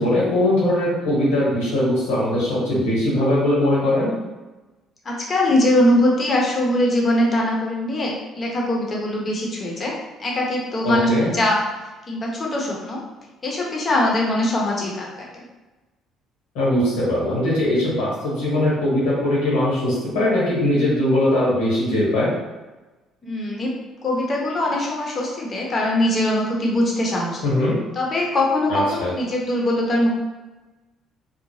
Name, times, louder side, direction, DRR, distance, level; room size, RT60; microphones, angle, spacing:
voice 1, 0.0-4.2 10.8-11.3 16.5-22.3 27.4-27.8 28.7-29.1, left 1 dB, 85° left, -7 dB, 1.3 m, -20 dB
voice 2, 5.0-9.9 10.2-11.6 12.1-13.0 13.4-15.4 23.2-23.7 24.0-27.4 27.9-30.1, left 1 dB, 40° left, -2 dB, 0.9 m, -22 dB
2.8 x 2.1 x 3.1 m, 1.2 s
supercardioid pair, 65°, 0 cm